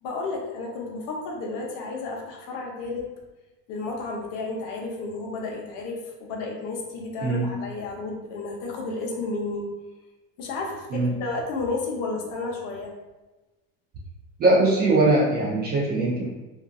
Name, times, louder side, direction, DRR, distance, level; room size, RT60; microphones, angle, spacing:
voice 1, 0.0-3.1 3.7-9.7 10.4-12.9, left 3 dB, 50° left, 0 dB, 0.7 m, -32 dB
voice 2, 14.4-16.3, right 2 dB, 25° right, -4 dB, 0.4 m, -21 dB
2.5 x 2.3 x 2.4 m, 1.1 s
supercardioid pair, 120°, 41 cm